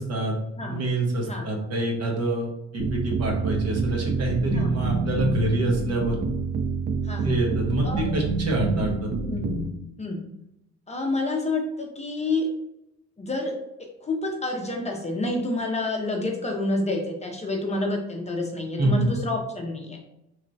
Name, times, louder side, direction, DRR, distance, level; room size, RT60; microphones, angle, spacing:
voice 1, 0.0-2.5 2.7-6.2 7.2-9.4 18.8-19.1, right 2 dB, 55° right, 0 dB, 1.0 m, -26 dB
sound 1, 2.8-9.7, right 4 dB, 35° right, 0.4 m, -27 dB
voice 2, 4.5-4.9 7.0-7.4 7.8-8.2 9.2-9.7 10.0-10.2 10.9-12.5 13.2-13.6 14.0-20.0, left 2 dB, 20° left, 1 dB, 0.6 m, -28 dB
3.1 x 2.8 x 2.6 m, 0.86 s
cardioid pair, 90°, 30 cm